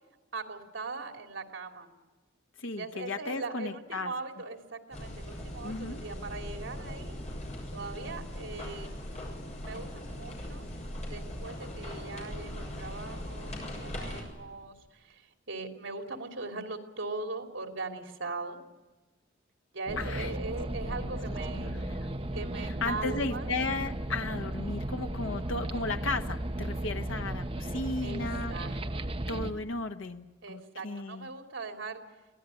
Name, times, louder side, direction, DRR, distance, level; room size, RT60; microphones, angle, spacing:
voice 1, 0.3-1.9 2.8-7.2 7.7-8.9 9.6-10.6 11.1-18.6 19.7-21.8 22.3-23.5 28.0-29.2 30.4-32.0, right 3 dB, 85° right, 4 dB, 3.1 m, -40 dB
voice 2, 2.6-4.1 5.6-6.0 20.0-20.3 20.8-22.3 22.8-28.5 29.3-31.3, left 3 dB, 85° left, 6 dB, 1.2 m, -35 dB
sound 1, 4.9-14.2, equal, 35° left, 7.1 m, -40 dB
sound 2, 19.9-29.5, right 1 dB, 30° right, 1.0 m, -35 dB
24.5 x 17.5 x 9.8 m, 1.2 s
head